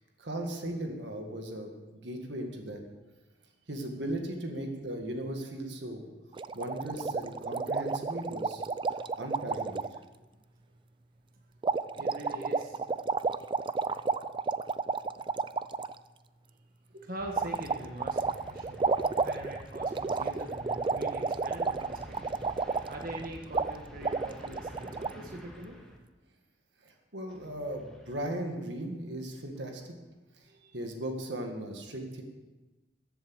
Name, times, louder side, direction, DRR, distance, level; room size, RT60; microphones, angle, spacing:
voice 1, 0.2-2.8 3.7-6.1 6.5-8.6 9.2-9.8 26.8-29.8 30.4-30.5 30.7-32.2, right 1 dB, 80° right, 3 dB, 1.8 m, -37 dB
sound 1, 6.4-10.0 11.6-15.9 17.4-23.3 23.5-23.7 24.0-25.1, right 4 dB, 30° right, 0.4 m, -31 dB
voice 2, 11.9-12.8 15.3-15.4 16.9-18.8 19.2-22.3 22.9-25.8 30.5-30.8, right 1 dB, 55° right, 1 dB, 1.5 m, -43 dB
sound 2, 17.2-26.0 27.3-28.3 29.6-29.9, equal, 5° left, 1.7 m, -49 dB
14.0 x 8.0 x 6.3 m, 1.1 s
head